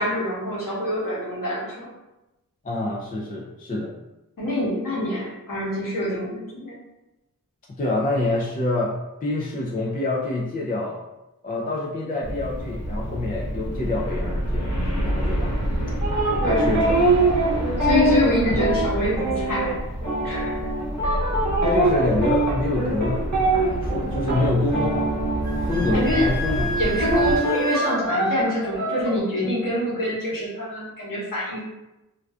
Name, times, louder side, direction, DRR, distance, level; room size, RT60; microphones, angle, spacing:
voice 1, 0.0-1.9 4.4-6.8 16.4-16.8 17.8-19.8 20.2-20.7 25.9-26.3 26.7-31.6, equal, 65° left, -8 dB, 1.1 m, -25 dB
voice 2, 2.6-3.9 7.8-8.9 9.2-11.0 11.4-14.8 15.0-15.6 16.4-17.1 18.5-18.6 21.6-25.1 25.6-26.8, left 2 dB, 25° left, -3 dB, 0.4 m, -26 dB
sound 1, 12.2-27.4, equal, 45° left, 0.8 m, -28 dB
sound 2, 16.0-26.2 26.5-29.2, right 2 dB, 50° right, 0.8 m, -24 dB
Wind instrument woodwind instrument, 25.4-28.0, right 2 dB, 85° right, 0.7 m, -30 dB
2.5 x 2.2 x 2.3 m, 0.96 s
wide cardioid pair, 60°, 36 cm